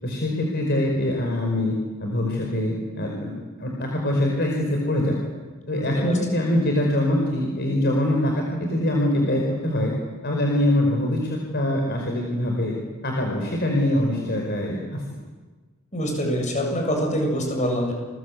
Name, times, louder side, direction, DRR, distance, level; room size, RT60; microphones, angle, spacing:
voice 1, 0.0-1.7 2.0-3.3 3.6-5.3 5.7-9.9 10.2-12.7 13.0-15.0, left 1 dB, 50° left, 0 dB, 5.0 m, -23 dB
voice 2, 15.9-17.9, equal, 35° left, 2 dB, 7.5 m, -24 dB
29.0 x 21.5 x 8.5 m, 1.3 s
head